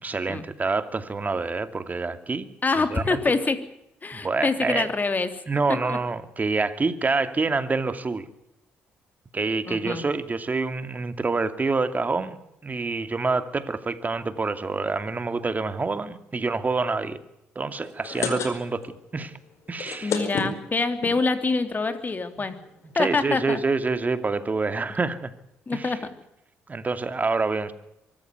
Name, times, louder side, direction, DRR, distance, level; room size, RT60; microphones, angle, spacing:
voice 1, 0.0-2.5 2.8-3.2 4.1-4.9 5.5-8.3 9.3-12.4 12.6-17.2 17.6-19.4 19.7-20.2 22.4-22.5 23.0-25.3 25.7-26.0 26.7-27.7, right 3 dB, 30° right, 11 dB, 2.5 m, -27 dB
voice 2, 2.6-3.6 4.0-5.4 5.7-6.0 9.7-10.0 20.0-22.6 22.9-23.6 25.7-26.1, left 3 dB, 30° left, 9 dB, 3.3 m, -25 dB
sound 1, 17.8-19.0 19.2-19.3 19.7-21.1 21.8-21.9 22.2-22.3 22.4-22.7, left 5 dB, 65° left, 4.8 m, -30 dB
24.0 x 14.5 x 9.5 m, 0.85 s
hypercardioid pair, 55°, 5 cm